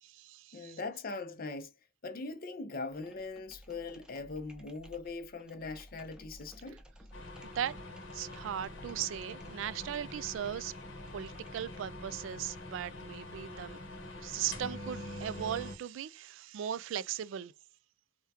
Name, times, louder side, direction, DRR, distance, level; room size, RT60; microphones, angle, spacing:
voice 1, 0.0-0.8 7.4-7.8 8.1-10.7 11.1-13.8 14.2-17.5, right 10 dB, 80° right, 0.3 m, -38 dB
voice 2, 0.5-1.7 2.0-6.8, left 3 dB, 50° left, 0.6 m, -41 dB
sound 1, 2.9-12.2, equal, 5° right, 0.5 m, -56 dB
sound 2, 7.1-15.8, left 1 dB, 80° left, 1.0 m, -45 dB
3.5 x 2.2 x 2.8 m
head